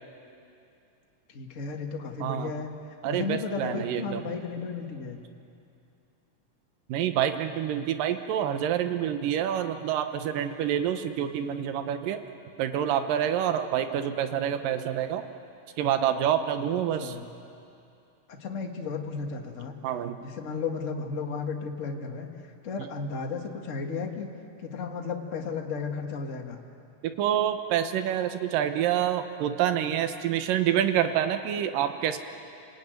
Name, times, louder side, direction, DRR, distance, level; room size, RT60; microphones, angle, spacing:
voice 1, 1.3-2.7 3.0-5.2 17.0-17.2 18.3-19.8 20.2-22.3 22.6-24.3 24.6-26.6, left 5 dB, 30° left, 2 dB, 1.5 m, -34 dB
voice 2, 3.0-4.3 6.9-12.2 12.6-15.2 15.8-17.2 19.8-20.2 27.0-32.2, right 10 dB, 85° right, 8 dB, 2.7 m, -27 dB
30.0 x 20.5 x 9.3 m, 2.6 s
omnidirectional pair, 3.8 m